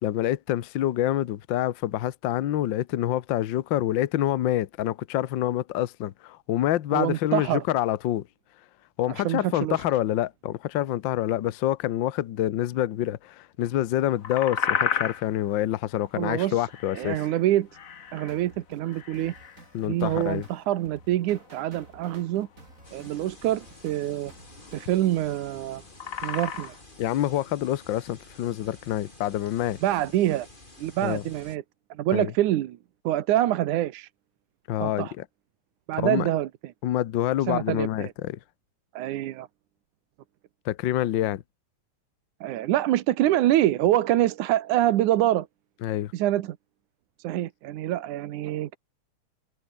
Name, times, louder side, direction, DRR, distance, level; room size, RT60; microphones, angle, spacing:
voice 1, 0.0-8.3 9.0-17.2 19.7-20.5 27.0-29.8 31.0-31.2 32.1-32.3 34.7-35.2 36.0-36.3 36.8-38.4 40.6-41.4 45.8-46.1, left 13 dB, 85° left, 1.0 m, -27 dB
voice 2, 6.9-7.6 9.1-9.8 16.2-16.6 16.9-17.7 18.1-19.3 19.8-22.5 22.9-24.3 24.7-25.8 26.2-26.7 29.8-30.5 30.8-31.6 31.9-32.8 33.0-34.1 34.8-35.1 35.9-36.5 37.5-38.1 38.9-39.5 42.4-45.5 46.1-46.6 47.2-48.8, right 13 dB, 85° right, 2.5 m, -25 dB
sound 1, 13.8-26.8, left 7 dB, 60° left, 0.8 m, -34 dB
sound 2, 18.3-24.9, right 2 dB, 25° right, 5.5 m, -52 dB
sound 3, 22.8-31.6, left 2 dB, 15° left, 4.2 m, -50 dB
omnidirectional pair, 3.5 m